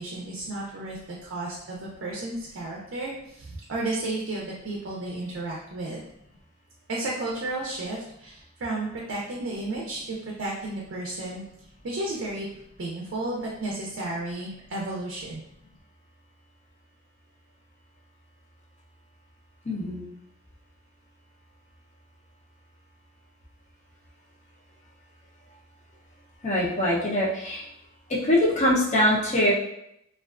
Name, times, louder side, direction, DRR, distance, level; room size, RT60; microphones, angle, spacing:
voice 1, 0.0-6.0 6.9-11.4 11.8-12.5 12.8-15.4, right 2 dB, 60° right, -3 dB, 0.5 m, -33 dB
voice 2, 19.7-20.1 26.4-27.7 28.1-29.5, left 1 dB, 35° left, -3 dB, 0.5 m, -23 dB
2.4 x 2.2 x 2.3 m, 0.79 s
head